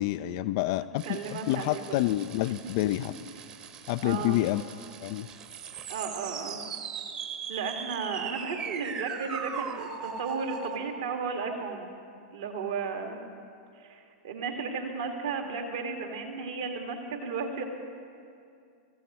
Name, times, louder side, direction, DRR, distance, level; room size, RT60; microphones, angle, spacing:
voice 1, 0.0-3.1 3.9-4.6 5.0-5.3, left 15 dB, 50° left, 12 dB, 0.3 m, -28 dB
sound 1, 1.0-10.8, right 7 dB, 35° right, 1.3 m, -40 dB
voice 2, 1.0-2.0 3.0-3.1 4.0-4.4 5.9-6.6 7.5-11.9 12.3-13.2 13.8-14.0 14.2-17.6, right 5 dB, 60° right, 3 dB, 1.8 m, -34 dB
24.5 x 15.0 x 3.0 m, 2.4 s
figure-of-eight pair, 90°, 3 cm